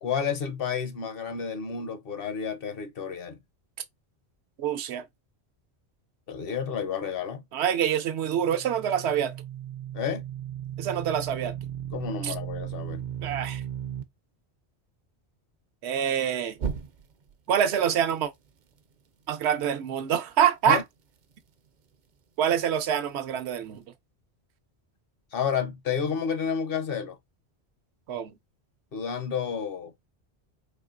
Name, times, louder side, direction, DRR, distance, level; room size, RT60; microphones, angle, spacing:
voice 1, 0.0-3.4 6.3-7.4 9.9-10.2 11.9-13.0 20.7-20.8 25.3-27.2 28.9-29.9, left 7 dB, 60° left, 0.9 m, -30 dB
voice 2, 4.6-5.0 7.5-9.3 10.8-11.5 12.2-12.3 13.2-13.6 15.8-16.6 17.5-18.3 19.3-20.8 22.4-23.8 28.1-28.3, right 9 dB, 80° right, 0.9 m, -26 dB
sound 1, 8.2-14.0 16.6-17.3, right 9 dB, 55° right, 0.6 m, -36 dB
4.4 x 2.8 x 2.4 m
omnidirectional pair, 1.1 m